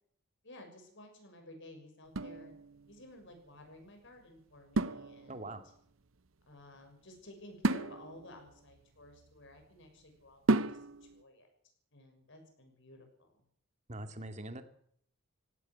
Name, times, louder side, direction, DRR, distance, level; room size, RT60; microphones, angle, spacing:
voice 1, 0.4-2.5 2.9-5.5 6.5-11.5 11.9-13.4, left 1 dB, 60° left, 5 dB, 6.6 m, -54 dB
sound 1, 2.1-3.1 4.7-5.7 7.6-9.6 10.5-11.2, right 2 dB, 70° right, 0.9 m, -34 dB
voice 2, 5.3-5.6 13.9-14.6, right 1 dB, 35° right, 8 dB, 2.3 m, -42 dB
17.0 x 15.5 x 9.7 m, 0.65 s
head